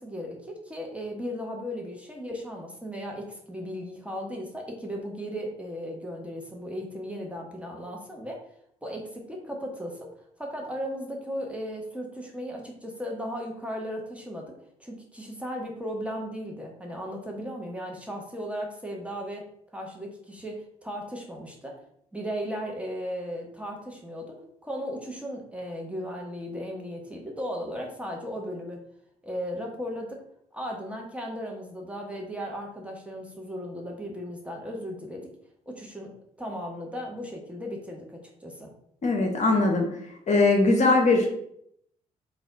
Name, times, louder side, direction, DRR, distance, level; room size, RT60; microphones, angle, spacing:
voice 1, 0.0-8.4 8.8-10.1 10.4-19.4 19.7-21.8 22.1-28.8 29.2-30.2 30.5-35.3 35.7-38.7, equal, 5° right, 0 dB, 1.1 m, -36 dB
voice 2, 39.0-39.9 40.3-41.4, left 3 dB, 40° left, 2 dB, 0.8 m, -21 dB
4.0 x 2.4 x 3.9 m, 0.71 s
figure-of-eight pair, 45°, 18 cm